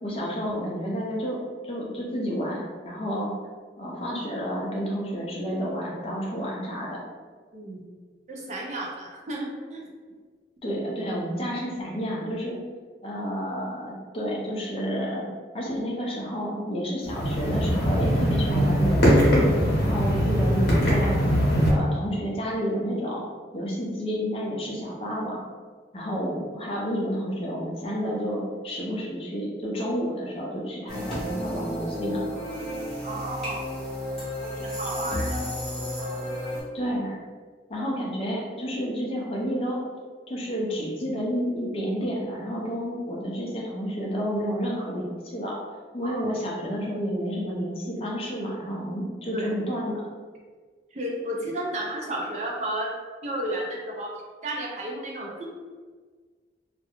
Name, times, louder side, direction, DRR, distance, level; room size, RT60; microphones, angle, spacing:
voice 1, 0.0-3.3 3.8-7.0 10.6-12.6 13.0-15.3 15.5-19.3 19.8-21.1 21.5-23.2 23.5-25.4 25.9-32.2 36.7-37.2 37.7-39.8 40.3-45.6 45.9-50.1, equal, 30° left, -3 dB, 0.4 m, -30 dB
voice 2, 7.5-7.9 8.3-9.9 33.0-33.6 34.4-35.4 36.0-36.3 46.0-46.2 49.3-49.5 50.9-52.9 53.2-54.1 54.4-55.5, right 1 dB, 40° right, -2 dB, 0.4 m, -33 dB
sound 1, 17.1-21.7, equal, 65° left, 0.8 m, -21 dB
sound 2, 30.9-36.6, left 1 dB, 5° left, 0.8 m, -32 dB
2.3 x 2.1 x 2.9 m, 1.5 s
head